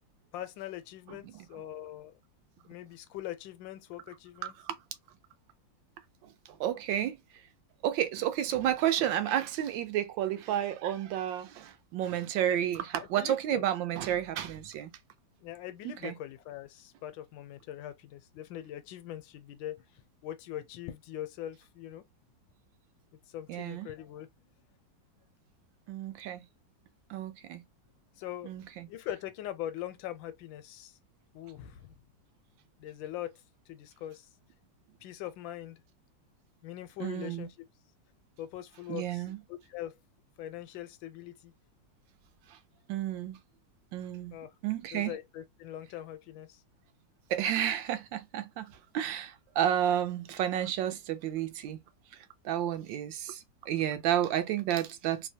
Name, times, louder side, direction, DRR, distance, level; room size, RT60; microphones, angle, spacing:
voice 1, 0.3-2.1 2.6-4.5 12.5-12.6 13.0-13.6 15.4-22.0 23.3-24.3 28.2-28.5 28.9-31.0 31.3-31.9 32.8-33.3 33.7-34.3 35.0-35.8 36.6-37.5 38.4-39.9 40.4-41.5 44.3-44.5 44.9-46.6, left 12 dB, 85° left, 1.3 m, -42 dB
voice 2, 6.2-7.2 7.8-14.9 15.8-16.1 23.5-23.9 25.9-26.4 27.1-27.6 28.4-28.9 37.0-37.5 38.9-39.4 42.5-42.6 42.9-43.4 43.9-44.4 44.6-45.1 47.3-51.8 52.4-55.3, right 11 dB, 90° right, 1.3 m, -31 dB
3.3 x 2.1 x 2.7 m
omnidirectional pair, 2.0 m